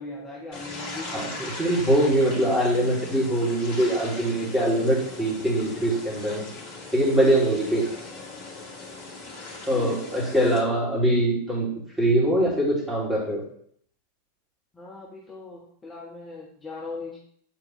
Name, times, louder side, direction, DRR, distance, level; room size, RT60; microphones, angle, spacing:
voice 1, 0.0-1.5 9.7-10.0 14.7-17.2, left 3 dB, 15° left, -4 dB, 1.3 m, -39 dB
sound 1, 0.5-10.6, left 2 dB, 45° left, 2.4 m, -39 dB
voice 2, 1.1-6.5 6.9-7.9 9.7-11.7 12.0-13.4, right 1 dB, 10° right, -5 dB, 3.1 m, -23 dB
8.7 x 4.5 x 3.3 m, 0.64 s
figure-of-eight pair, 90°, 0 cm